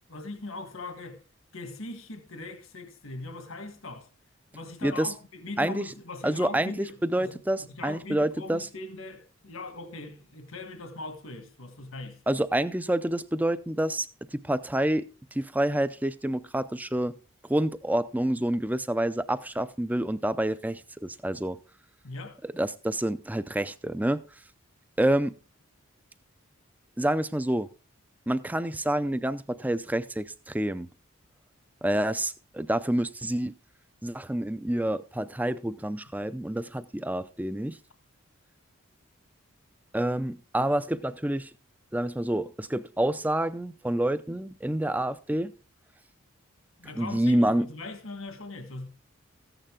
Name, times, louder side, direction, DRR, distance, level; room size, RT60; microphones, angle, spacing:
voice 1, 0.1-1.2 1.5-4.1 4.5-12.2 22.0-22.4 46.8-48.9, left 2 dB, 80° left, 1.6 m, -40 dB
voice 2, 6.2-8.7 12.3-14.1 14.3-15.0 15.3-17.1 17.5-21.6 22.5-24.2 25.0-25.3 27.0-27.7 28.3-30.9 31.8-33.5 34.0-37.8 39.9-41.5 41.9-45.5 47.0-47.7, right 1 dB, 10° right, 0.4 m, -28 dB
15.0 x 9.0 x 3.7 m
head